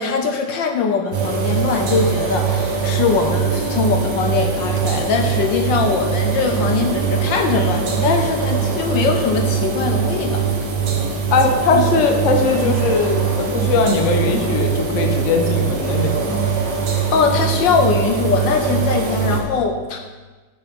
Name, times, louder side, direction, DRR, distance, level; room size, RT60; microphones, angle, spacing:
voice 1, 0.0-10.4 11.7-11.8 12.6-12.7 17.1-20.0, left 5 dB, 65° left, 4 dB, 1.3 m, -21 dB
sound 1, 1.1-19.4, right 6 dB, 55° right, 1.7 m, -21 dB
voice 2, 11.3-16.4, left 4 dB, 50° left, 4 dB, 1.0 m, -19 dB
10.0 x 9.2 x 3.6 m, 1.3 s
omnidirectional pair, 2.3 m